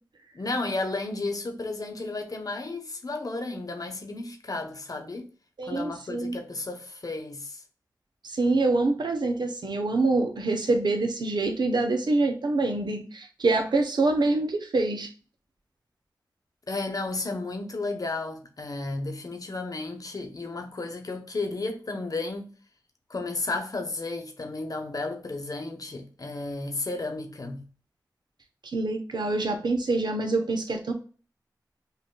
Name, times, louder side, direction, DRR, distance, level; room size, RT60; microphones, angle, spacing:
voice 1, 0.3-5.3 5.6-7.6 16.7-22.5 23.1-27.6, left 2 dB, 55° left, 1.0 m, -33 dB
voice 2, 5.6-6.4 8.2-15.1 28.7-30.9, right 2 dB, 75° right, 0.9 m, -25 dB
5.6 x 2.6 x 2.2 m
cardioid pair, 40°, 7 cm